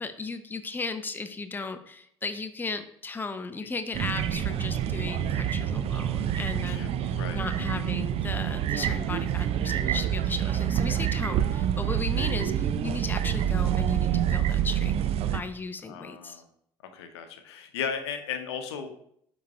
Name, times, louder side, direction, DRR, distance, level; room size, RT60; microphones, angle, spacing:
voice 1, 0.0-15.0 15.3-16.4, left 3 dB, 15° left, 9 dB, 0.6 m, -36 dB
sound 1, 3.9-15.4, right 10 dB, 45° right, 0.5 m, -27 dB
voice 2, 6.7-7.4 15.8-16.5 16.9-18.9, left 7 dB, 70° left, 7 dB, 0.8 m, -36 dB
12.0 x 4.1 x 2.3 m, 0.70 s
figure-of-eight pair, 55°, 15 cm